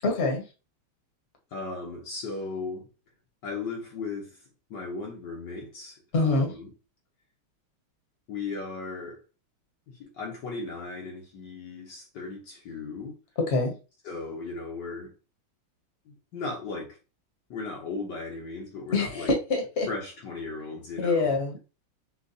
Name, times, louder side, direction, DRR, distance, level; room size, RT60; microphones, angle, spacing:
voice 1, 0.0-0.5 6.1-6.5 13.5-13.7 18.9-19.9 21.0-21.6, left 3 dB, 40° left, 1.2 m, -25 dB
voice 2, 1.5-2.9 3.4-4.4 4.7-6.7 8.3-9.2 9.9-13.2 14.0-15.1 16.1-17.0 17.5-19.3 19.9-21.4, left 3 dB, 60° left, 1.5 m, -36 dB
6.3 x 2.5 x 2.7 m
omnidirectional pair, 2.3 m